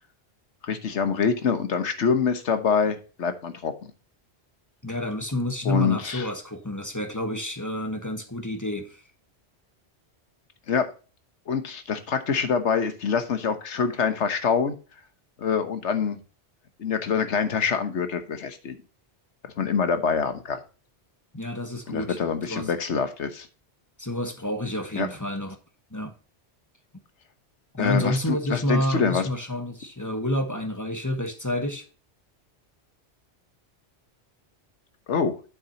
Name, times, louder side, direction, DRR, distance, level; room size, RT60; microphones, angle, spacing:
voice 1, 0.6-3.7 5.6-6.3 10.7-10.9 11.5-14.7 15.4-16.2 16.8-18.8 19.6-20.6 21.9-23.5 25.0-25.1 27.8-29.3 35.1-35.3, left 6 dB, 80° left, 9 dB, 1.5 m, -25 dB
voice 2, 4.8-9.0 21.3-22.2 22.5-22.7 24.0-25.6 25.9-26.1 27.7-31.9, left 1 dB, 15° left, 6 dB, 1.2 m, -29 dB
9.0 x 7.3 x 2.8 m, 0.34 s
omnidirectional pair, 1.2 m